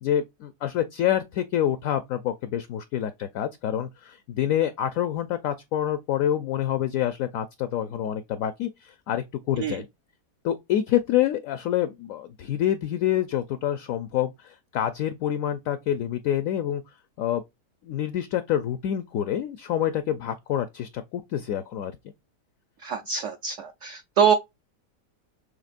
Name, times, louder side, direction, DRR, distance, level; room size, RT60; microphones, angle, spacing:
voice 1, 0.0-9.9 10.4-16.8 17.2-17.4 17.8-22.0, left 11 dB, 70° left, 0.8 m, -27 dB
voice 2, 22.8-24.3, right 7 dB, 70° right, 0.7 m, -24 dB
6.6 x 3.2 x 2.4 m
omnidirectional pair, 1.8 m